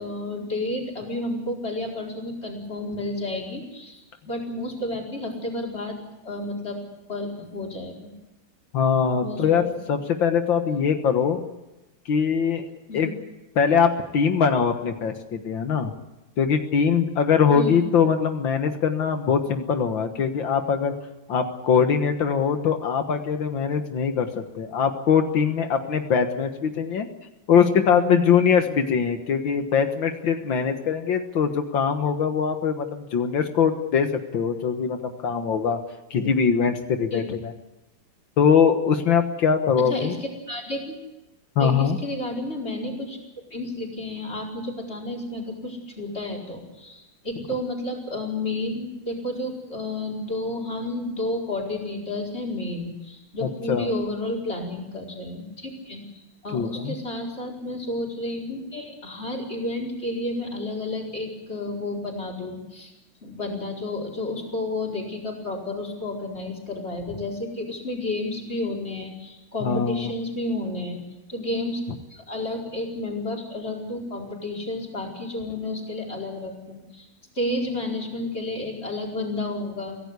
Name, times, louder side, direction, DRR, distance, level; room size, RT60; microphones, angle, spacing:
voice 1, 0.0-6.0 6.2-6.8 7.1-8.1 9.2-9.8 12.9-13.1 17.5-17.8 37.1-37.3 39.8-41.0 41.6-43.2 43.5-62.9 63.2-71.0 71.3-71.8 72.1-77.1 77.3-80.0, left 2 dB, 30° left, 0 dB, 5.0 m, -31 dB
voice 2, 8.7-11.4 12.1-12.6 12.9-13.1 13.6-15.9 16.4-20.9 21.3-27.1 27.5-35.8 36.1-37.5 38.4-40.2 41.6-42.0 53.4-53.9 56.5-57.0 69.6-70.1, left 6 dB, 80° left, 7 dB, 2.2 m, -22 dB
24.5 x 16.5 x 8.2 m, 1.0 s
omnidirectional pair, 2.1 m